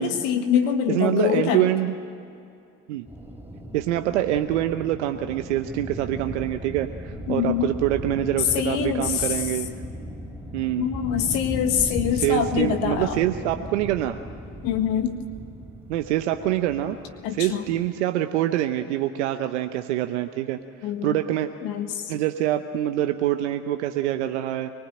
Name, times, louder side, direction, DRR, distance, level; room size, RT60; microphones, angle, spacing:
voice 1, 0.0-1.7 7.3-7.7 8.5-9.3 10.8-13.2 14.6-15.2 17.2-17.6 20.8-21.2 21.6-22.1, left 8 dB, 80° left, 7 dB, 1.7 m, -24 dB
voice 2, 0.9-1.9 2.9-3.0 3.7-9.7 10.5-10.9 12.1-14.2 15.9-17.0 17.3-20.6 21.0-21.5 22.1-24.7, right 13 dB, 90° right, 7 dB, 0.9 m, -25 dB
sound 1, 3.1-17.9, equal, 5° right, 4.1 m, -37 dB
24.5 x 19.5 x 8.9 m, 2.5 s
hypercardioid pair, 60°, 34 cm